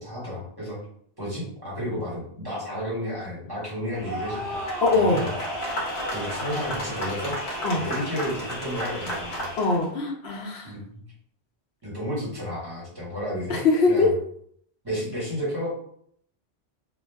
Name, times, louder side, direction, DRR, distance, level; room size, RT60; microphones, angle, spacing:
voice 1, 0.0-0.8 1.2-4.6 4.9-5.3 6.1-7.3 7.7-9.5 10.6-11.0 11.8-13.6 13.9-14.1 14.8-15.7, equal, 20° right, -7 dB, 1.1 m, -32 dB
sound 1, 3.9-9.8, equal, 45° left, 0.8 m, -32 dB
voice 2, 4.8-5.2 7.6-7.8 9.6-10.7 13.5-14.1, left 3 dB, 75° left, 1 dB, 0.8 m, -22 dB
2.3 x 2.2 x 3.3 m, 0.64 s
omnidirectional pair, 1.1 m